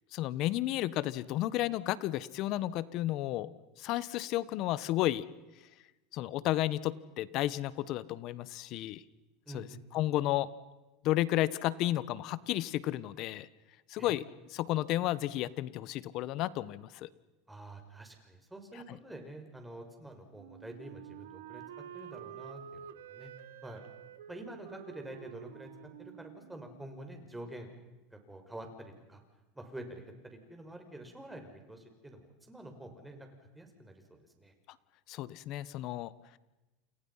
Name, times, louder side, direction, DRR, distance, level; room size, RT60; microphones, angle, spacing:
voice 1, 0.1-3.5 3.8-5.2 6.1-9.0 9.5-9.7 9.9-10.5 11.0-13.5 13.9-14.2 14.5-17.1 18.9-19.0 35.1-36.1, left 15 dB, 55° left, 17 dB, 1.3 m, -32 dB
voice 2, 9.5-9.8 14.0-14.1 17.5-21.6 21.9-23.3 23.6-23.9 24.3-25.7 26.0-27.7 28.1-29.2 29.5-33.3 33.5-34.5, right 1 dB, 5° right, 4 dB, 6.1 m, -47 dB
Wind instrument woodwind instrument, 20.3-27.2, right 10 dB, 85° right, 1.5 m, -49 dB
30.0 x 28.5 x 5.8 m, 1.1 s
supercardioid pair, 110°, 0 cm